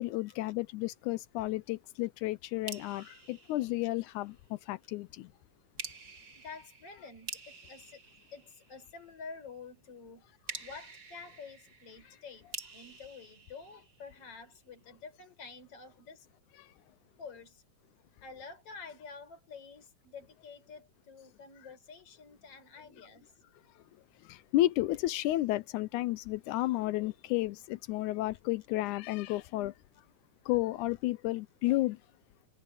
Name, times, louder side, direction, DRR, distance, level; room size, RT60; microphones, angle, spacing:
voice 1, 0.0-5.3 16.6-16.7 24.3-29.7 30.5-32.0, left 17 dB, 80° left, 2.0 m, -32 dB
sound 1, 2.7-4.4 5.8-9.1 10.5-14.4, right 4 dB, 30° right, 1.6 m, -47 dB
voice 2, 6.4-8.0 8.3-16.3 17.2-17.6 18.2-23.3, left 5 dB, 50° left, 5.5 m, -49 dB
omnidirectional pair, 3.6 m